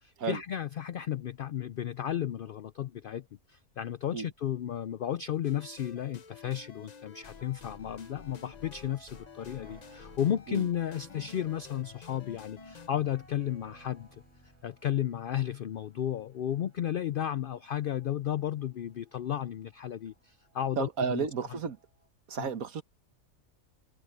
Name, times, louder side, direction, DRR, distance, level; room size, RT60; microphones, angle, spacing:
voice 1, 0.0-14.2 14.6-21.3 22.4-22.5, left 10 dB, 75° left, 0.5 m, -33 dB
sound 1, 5.4-12.9, left 6 dB, 40° left, 0.7 m, -50 dB
sound 2, 7.1-22.1, right 2 dB, 60° right, 6.4 m, -62 dB
sound 3, 7.2-15.2, equal, 5° left, 3.5 m, -63 dB
voice 2, 20.8-21.8 22.3-22.8, right 6 dB, 80° right, 1.8 m, -32 dB
omnidirectional pair, 1.5 m